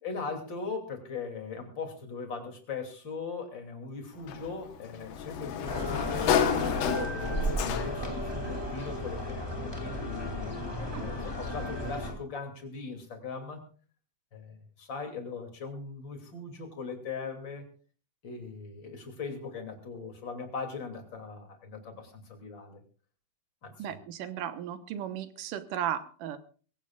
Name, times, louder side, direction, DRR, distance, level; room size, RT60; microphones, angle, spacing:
voice 1, 0.0-13.6 14.3-17.7 18.2-22.8 23.6-24.0, left 4 dB, 35° left, 4 dB, 3.3 m, -40 dB
Sliding door, 4.3-8.2, left 9 dB, 85° left, 2.8 m, -30 dB
sound 1, 5.6-12.1, equal, 10° left, 2.1 m, -34 dB
voice 2, 23.8-26.4, right 10 dB, 85° right, 10 dB, 2.7 m, -35 dB
23.0 x 16.5 x 2.4 m, 0.39 s
omnidirectional pair, 3.7 m